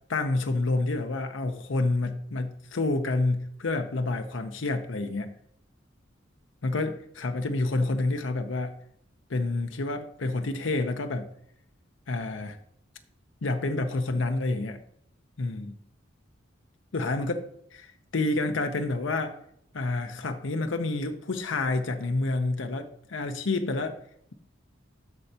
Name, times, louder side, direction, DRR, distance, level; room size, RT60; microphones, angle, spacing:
voice 1, 0.1-5.3 6.6-8.7 9.3-11.3 12.1-12.6 13.4-14.8 15.4-15.7 16.9-19.4 19.7-24.0, left 2 dB, 75° left, 6 dB, 0.7 m, -28 dB
13.0 x 4.5 x 2.8 m, 0.69 s
head